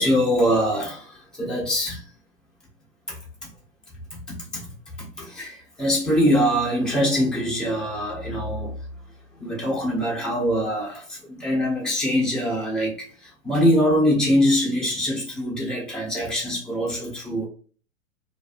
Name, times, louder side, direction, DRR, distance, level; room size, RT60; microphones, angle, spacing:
voice 1, 0.0-2.0 3.1-3.2 4.3-8.8 9.4-17.5, equal, ahead, 0.6 m, -23 dB
2.4 x 2.2 x 2.8 m
figure-of-eight pair, 110°, 40 cm